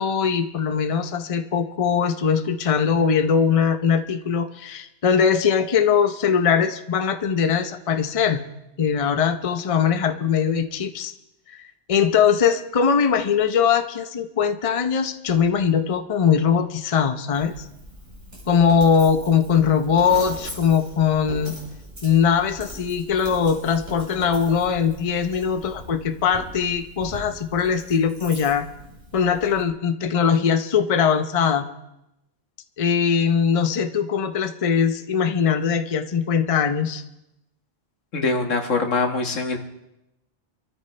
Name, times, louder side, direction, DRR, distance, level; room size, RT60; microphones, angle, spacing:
voice 1, 0.0-8.4 8.8-11.1 11.5-11.6 11.9-17.7 18.5-21.5 22.0-28.7 29.1-31.7 32.8-37.0, left 7 dB, 35° left, 8 dB, 0.7 m, -21 dB
Coin (dropping), 17.3-29.6, equal, 40° right, 4.3 m, -40 dB
voice 2, 38.1-39.6, left 3 dB, 85° left, 4 dB, 1.8 m, -23 dB
26.5 x 13.5 x 3.3 m, 0.88 s
omnidirectional pair, 1.3 m